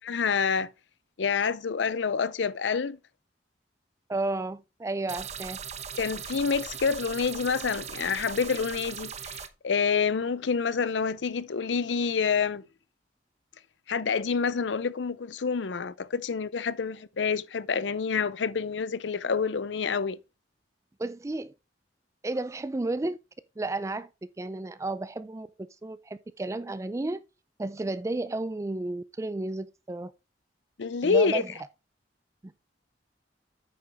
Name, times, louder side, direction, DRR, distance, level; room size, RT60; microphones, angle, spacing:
voice 1, 0.1-0.7 1.2-3.0 5.9-12.6 13.9-20.2 30.8-31.4, left 5 dB, 85° left, 0.6 m, -27 dB
voice 2, 4.1-5.6 21.0-21.5 22.2-23.2 23.6-24.1 24.4-27.2 27.6-30.1 31.0-31.5 32.4-32.5, right 2 dB, 15° right, 0.3 m, -32 dB
sound 1, 5.1-9.5, right 7 dB, 40° right, 0.8 m, -39 dB
8.7 x 6.8 x 3.5 m
head